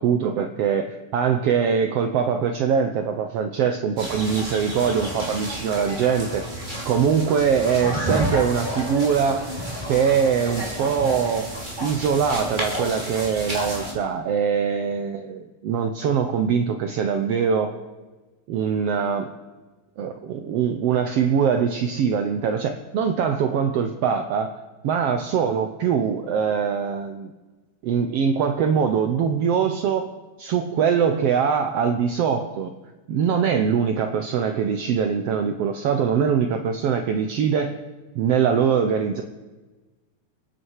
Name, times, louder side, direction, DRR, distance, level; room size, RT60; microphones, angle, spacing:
voice 1, 0.0-6.4 6.9-9.5 9.9-11.5 11.8-17.7 18.5-19.3 20.0-24.5 24.8-27.3 27.8-30.1 30.4-32.7 33.1-37.8 38.2-39.2, right 7 dB, 70° right, 6 dB, 1.7 m, -22 dB
sound 1, 4.0-13.9, equal, 15° right, 3.0 m, -30 dB
28.5 x 9.6 x 4.8 m, 1.2 s
omnidirectional pair, 3.3 m